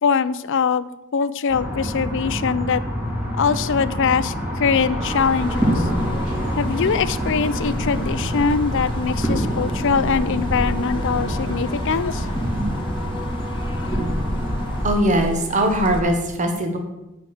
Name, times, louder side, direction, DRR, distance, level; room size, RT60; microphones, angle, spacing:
voice 1, 0.0-2.8 3.4-5.9 6.6-12.3 13.8-14.1, left 6 dB, 60° left, 15 dB, 0.5 m, -22 dB
sound 1, 1.5-14.9, equal, 10° right, 2.6 m, -26 dB
sound 2, 4.7-12.5, equal, 80° right, 3.4 m, -34 dB
sound 3, 5.1-16.0, left 1 dB, 25° left, 1.3 m, -32 dB
voice 2, 14.8-16.8, right 1 dB, 35° right, 4 dB, 1.4 m, -20 dB
8.3 x 5.9 x 7.8 m, 0.94 s
head